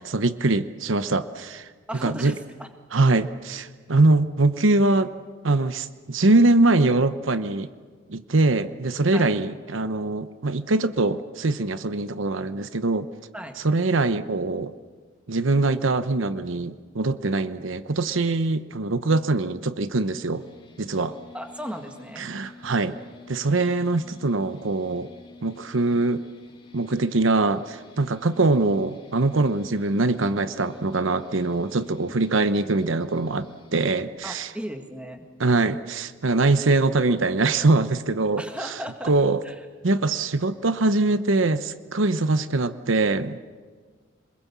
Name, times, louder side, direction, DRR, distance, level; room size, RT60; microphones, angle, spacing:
voice 1, 0.0-1.7 2.0-2.3 2.9-5.1 5.4-7.7 8.1-13.1 13.6-14.7 15.3-20.5 20.8-21.2 22.2-23.0 23.3-25.1 25.4-26.2 26.7-34.5 35.4-38.7 39.0-39.4 39.8-43.4, right 2 dB, 80° right, 12 dB, 0.9 m, -23 dB
voice 2, 1.9-2.7 9.1-9.3 13.3-13.5 21.3-22.3 34.2-35.2 38.4-39.1 39.4-39.5, equal, 5° right, 4 dB, 1.9 m, -36 dB
sound 1, 20.3-34.0, left 2 dB, 25° left, 3.8 m, -50 dB
27.5 x 21.0 x 7.3 m, 1.5 s
head